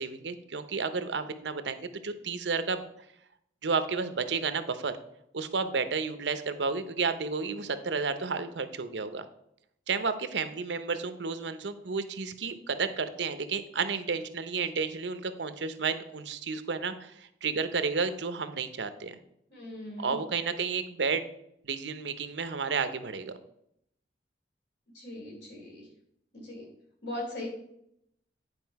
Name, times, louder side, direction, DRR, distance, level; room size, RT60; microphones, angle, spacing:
voice 1, 0.0-2.8 3.6-4.9 5.3-9.2 9.9-19.2 20.0-21.2 21.6-23.3, right 5 dB, 85° right, 11 dB, 0.7 m, -31 dB
voice 2, 19.5-20.2 24.9-25.8 26.3-26.7 27.0-27.5, left 1 dB, 70° left, -2 dB, 3.6 m, -39 dB
9.8 x 4.9 x 4.7 m, 0.76 s
head